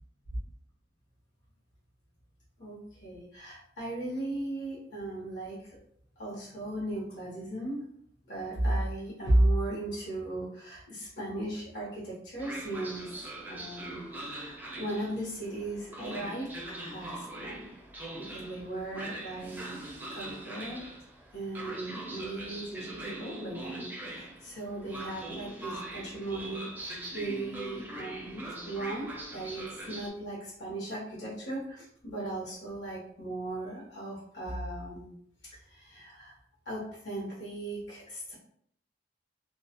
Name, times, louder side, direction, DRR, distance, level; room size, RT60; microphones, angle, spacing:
voice 1, 2.6-5.8 6.2-7.8 8.3-13.1 13.5-17.7 18.3-20.9 21.3-35.1 35.5-36.3 36.6-38.3, right 1 dB, 70° left, -6 dB, 0.8 m, -36 dB
Train, 12.4-30.1, right 1 dB, 10° right, 0.4 m, -42 dB
2.2 x 2.0 x 2.8 m, 0.66 s
head